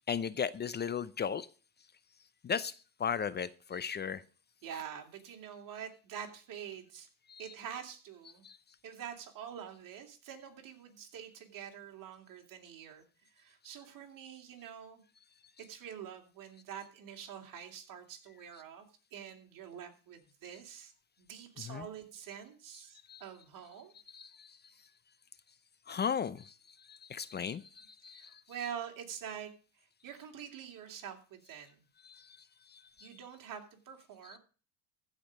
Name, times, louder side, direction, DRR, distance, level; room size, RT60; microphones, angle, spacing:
voice 1, 0.1-1.5 2.4-2.7 3.0-4.2 7.3-7.4 8.4-8.6 21.7-21.9 23.1-23.2 24.1-24.6 25.9-26.5 26.9-28.4 32.0-32.4 32.7-33.1 34.3-34.4, left 7 dB, 25° left, 17 dB, 0.6 m, -36 dB
voice 2, 4.6-7.1 7.4-8.4 8.8-13.1 13.3-15.0 15.6-18.8 19.1-20.9 21.2-23.9 28.1-29.5 30.0-31.8 33.0-34.4, right 8 dB, 50° right, 3 dB, 3.0 m, -46 dB
15.0 x 5.1 x 6.4 m, 0.37 s
supercardioid pair, 90°, 42 cm